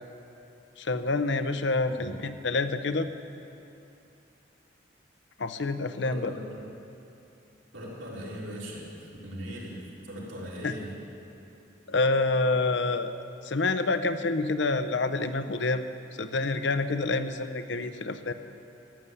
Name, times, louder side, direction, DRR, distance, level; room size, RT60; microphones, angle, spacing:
voice 1, 0.8-3.1 5.4-6.3 10.6-10.7 11.9-13.1 13.4-15.8 16.2-18.3, left 3 dB, 70° left, 10 dB, 0.7 m, -27 dB
voice 2, 6.0-6.5 7.7-8.9 9.2-10.9, equal, 90° right, -5 dB, 3.6 m, -39 dB
15.0 x 11.0 x 8.1 m, 2.7 s
head